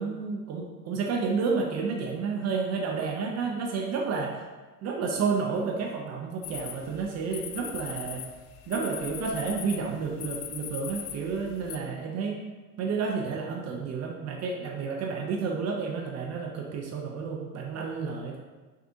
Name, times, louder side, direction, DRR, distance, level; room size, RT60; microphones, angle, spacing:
voice 1, 0.0-4.4 4.8-8.2 8.7-12.4 12.8-18.5, right 5 dB, 35° right, 1 dB, 0.6 m, -31 dB
sound 1, 6.4-11.8, left 10 dB, 45° left, 0.5 m, -40 dB
6.1 x 2.5 x 2.7 m, 1.3 s
hypercardioid pair, 90°, 49 cm